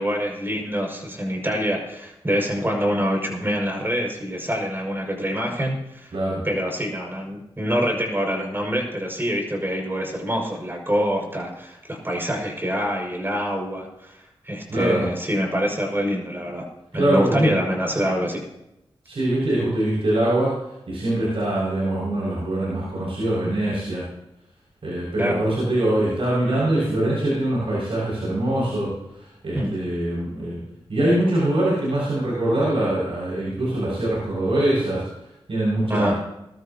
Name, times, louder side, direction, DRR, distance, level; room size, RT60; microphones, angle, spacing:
voice 1, 0.0-6.1 6.4-16.7 16.9-18.4 25.2-25.4 29.5-29.7 35.9-36.1, equal, 20° right, 0 dB, 6.1 m, -25 dB
voice 2, 6.1-6.4 14.7-15.0 16.9-17.5 19.0-20.5 20.9-24.0 24.8-30.6 30.9-35.0 35.5-36.1, right 1 dB, 70° right, -7 dB, 6.3 m, -23 dB
21.5 x 13.0 x 3.0 m, 0.87 s
cardioid pair, 55°, 10 cm